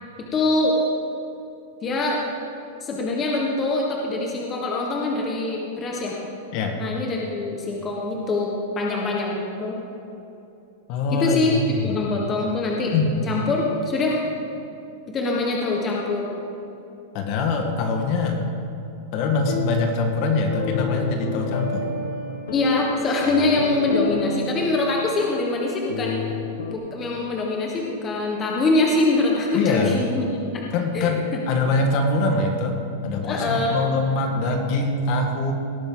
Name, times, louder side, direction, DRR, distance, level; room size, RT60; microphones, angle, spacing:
voice 1, 0.2-0.8 1.8-2.2 2.8-6.2 6.8-9.8 11.1-12.9 13.2-14.2 15.1-16.3 22.5-26.2 26.7-30.6 30.9-31.1 33.2-33.8, left 2 dB, 20° left, -1 dB, 1.3 m, -24 dB
voice 2, 10.9-12.0 12.9-13.3 17.1-18.5 19.1-21.9 29.5-30.0 30.7-35.5, left 3 dB, 40° left, 3 dB, 1.5 m, -23 dB
sound 1, 19.3-26.7, left 5 dB, 80° left, 1.3 m, -31 dB
18.0 x 9.0 x 3.9 m, 2.8 s
supercardioid pair, 165°, 0 cm